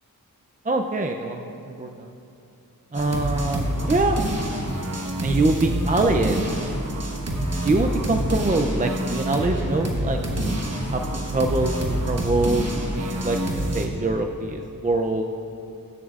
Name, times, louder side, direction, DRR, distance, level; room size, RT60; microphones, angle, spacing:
voice 1, 0.6-2.1 2.9-4.2 5.2-6.4 7.6-10.2 10.9-11.0 11.3-12.7 12.9-13.4 13.7-15.3, right 2 dB, 25° right, 4 dB, 0.4 m, -24 dB
sound 1, 2.9-13.9, right 1 dB, 45° right, 1.2 m, -27 dB
17.0 x 9.1 x 2.4 m, 2.7 s
wide cardioid pair, 90°, 36 cm